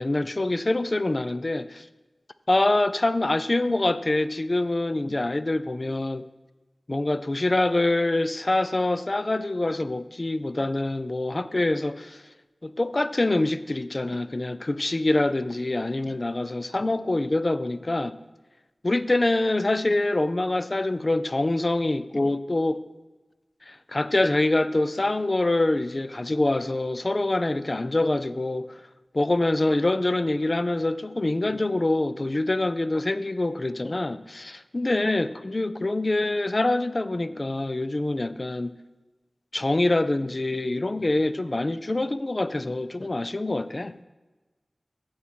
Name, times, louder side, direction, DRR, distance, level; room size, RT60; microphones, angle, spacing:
voice 1, 0.0-1.9 2.5-6.3 6.9-12.2 12.6-18.2 18.8-22.8 23.7-28.8 29.1-38.7 39.5-43.9, left 2 dB, 40° left, 0.5 m, -25 dB
15.0 x 7.1 x 4.5 m
wide cardioid pair, 75°, 0 cm